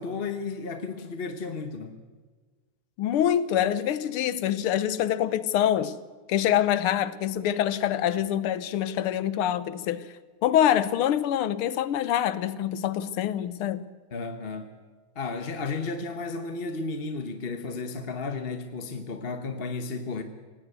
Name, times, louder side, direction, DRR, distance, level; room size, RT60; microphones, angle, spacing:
voice 1, 0.0-2.0 14.1-14.7 15.1-20.2, left 4 dB, 35° left, 1.0 m, -33 dB
voice 2, 3.0-6.0 6.3-10.0 10.4-13.9, left 11 dB, 85° left, 1.8 m, -25 dB
18.0 x 18.0 x 8.2 m
omnidirectional pair, 2.4 m